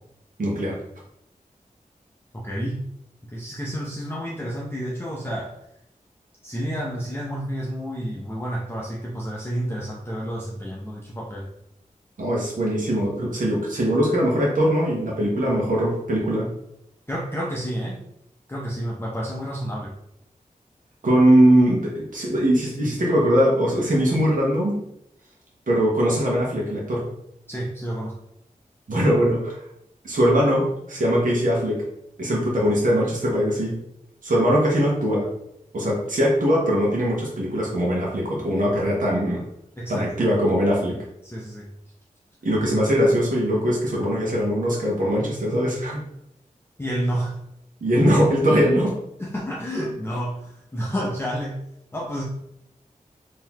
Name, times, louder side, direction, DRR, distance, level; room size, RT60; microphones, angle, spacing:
voice 1, 0.4-0.8 12.2-16.5 21.0-24.8 25.7-27.1 28.9-29.6 30.0-31.8 32.2-33.8 34.2-35.3 35.7-39.4 39.9-41.0 42.4-46.0 47.8-49.0, equal, 65° right, -4 dB, 0.9 m, -21 dB
voice 2, 2.3-2.9 3.3-5.5 6.4-11.5 17.1-18.0 18.5-19.9 27.5-28.2 39.8-40.1 41.2-41.7 46.8-47.4 49.2-51.6 51.9-52.2, equal, 15° left, -4 dB, 0.6 m, -30 dB
3.8 x 2.8 x 2.9 m, 0.79 s
wide cardioid pair, 80°, 14 cm